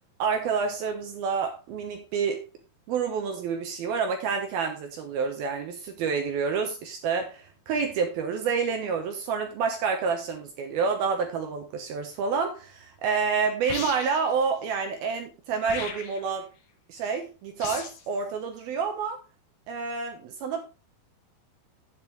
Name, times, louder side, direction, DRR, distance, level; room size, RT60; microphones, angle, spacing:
voice 1, 0.2-2.4 2.9-16.5 16.9-19.2 19.7-20.6, right 5 dB, 70° right, 4 dB, 2.5 m, -28 dB
sound 1, 13.6-14.3 15.6-16.3 17.6-18.1, left 7 dB, 65° left, 2.0 m, -37 dB
9.6 x 8.3 x 3.5 m, 0.30 s
omnidirectional pair, 5.4 m